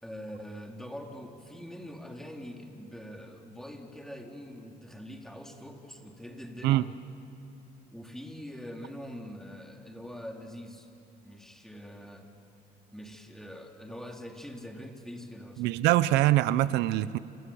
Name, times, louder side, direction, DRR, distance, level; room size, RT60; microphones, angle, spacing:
voice 1, 0.0-6.9 7.9-10.9 11.2-12.3 12.9-15.7, equal, 5° left, 2 dB, 3.1 m, -43 dB
voice 2, 15.6-17.2, right 15 dB, 85° right, 15 dB, 0.7 m, -24 dB
29.0 x 27.5 x 7.1 m, 2.8 s
cardioid pair, 110°, 17 cm